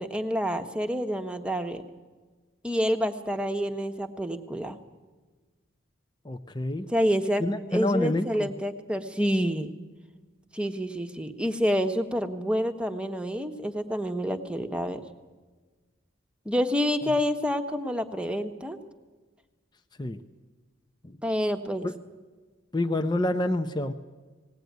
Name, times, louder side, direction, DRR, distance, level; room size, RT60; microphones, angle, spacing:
voice 1, 0.0-1.8 2.6-4.8 6.9-7.4 7.7-9.7 10.5-15.0 16.4-18.8 21.2-21.9, equal, 5° right, 7 dB, 1.1 m, -28 dB
voice 2, 6.2-6.9 7.4-8.5 20.0-20.2 21.0-21.2 21.8-21.9 22.7-23.9, left 1 dB, 20° left, 7 dB, 0.7 m, -27 dB
19.0 x 17.5 x 9.4 m, 1.3 s
head